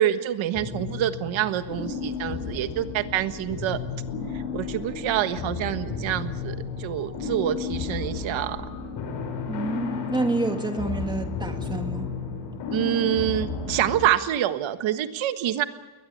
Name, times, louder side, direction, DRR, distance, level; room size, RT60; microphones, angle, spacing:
voice 1, 0.0-3.8 4.3-8.6 12.7-15.6, right 11 dB, 85° right, 10 dB, 1.5 m, -26 dB
sound 1, 0.5-14.0, left 5 dB, 65° left, 6.4 m, -33 dB
sound 2, 1.6-8.9, left 4 dB, 40° left, 7.7 m, -46 dB
voice 2, 9.5-12.1, right 2 dB, 10° right, 5 dB, 2.0 m, -28 dB
22.0 x 20.5 x 8.5 m, 1.2 s
cardioid pair, 180°, 46 cm